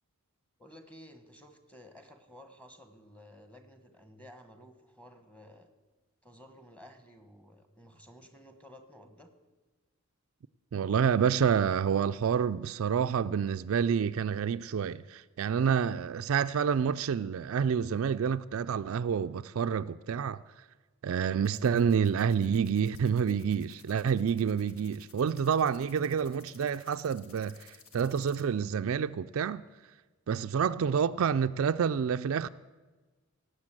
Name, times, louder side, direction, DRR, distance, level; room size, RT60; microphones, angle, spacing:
voice 1, 0.6-5.7 6.2-9.3 21.8-22.0 30.5-30.8, equal, 5° left, 1.3 m, -54 dB
voice 2, 10.7-20.4 21.0-29.6 30.3-32.5, right 7 dB, 65° right, 0.4 m, -28 dB
sound 1, 21.4-28.4, left 5 dB, 70° left, 1.6 m, -56 dB
18.0 x 8.0 x 7.5 m
head